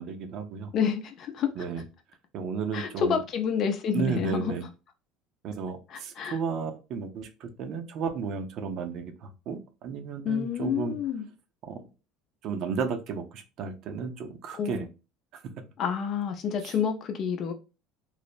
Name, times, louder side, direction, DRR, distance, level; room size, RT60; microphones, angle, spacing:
voice 1, 0.0-0.7 1.6-1.8 2.3-3.2 3.9-4.6 5.4-11.0 11.6-11.8 12.4-14.9 15.3-15.4 16.6-16.7, right 5 dB, 55° right, 0.5 m, -33 dB
voice 2, 0.7-1.5 2.7-4.5 5.9-6.4 10.2-11.3 14.6-14.8 15.8-17.5, left 7 dB, 50° left, 0.5 m, -29 dB
3.2 x 2.0 x 2.4 m
supercardioid pair, 105°, 0 cm